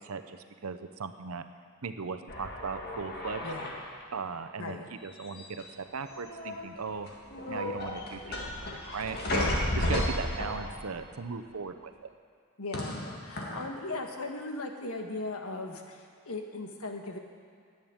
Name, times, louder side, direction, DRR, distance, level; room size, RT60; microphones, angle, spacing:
voice 1, 0.0-1.4 1.8-3.5 4.1-7.1 7.5-8.4 8.9-9.5 9.8-12.1, right 5 dB, 80° right, 9 dB, 0.8 m, -37 dB
sound 1, 2.3-4.0 5.2-5.8 6.1-6.7 7.1-11.0 12.7-13.6, left 1 dB, 50° left, 1.8 m, -33 dB
voice 2, 3.4-3.7 4.6-4.9 9.8-10.1 12.6-17.2, left 2 dB, 85° left, 3 dB, 1.4 m, -38 dB
10.5 x 8.7 x 8.8 m, 2.3 s
head